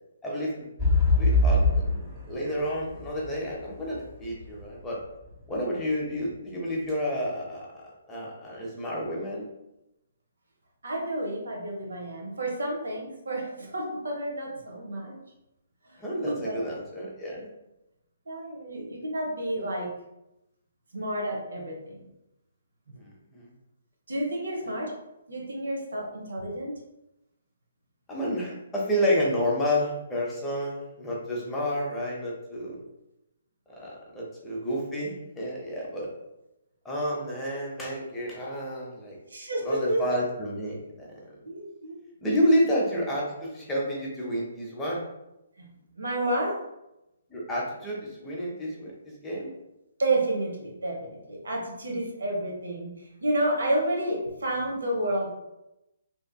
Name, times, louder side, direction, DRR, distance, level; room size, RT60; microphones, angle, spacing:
voice 1, 0.2-0.7 1.2-1.8 2.3-5.0 5.5-7.7 8.1-9.5 16.0-17.5 23.0-23.5 28.1-32.8 33.7-36.1 36.8-39.2 39.6-41.1 42.2-45.0 47.3-49.5, equal, 10° left, -4 dB, 0.7 m, -30 dB
sound 1, 0.8-4.7 5.2-5.3, left 2 dB, 15° right, 1.0 m, -23 dB
voice 2, 10.8-15.2 15.9-16.6 18.3-19.9 20.9-22.0 24.1-24.9 25.3-26.7 39.3-40.0 41.4-41.9 42.4-42.5 45.6-45.7 46.0-46.5 50.0-55.3, right 1 dB, 70° right, -1 dB, 0.8 m, -30 dB
2.8 x 2.5 x 2.3 m, 0.90 s
figure-of-eight pair, 135°, 0 cm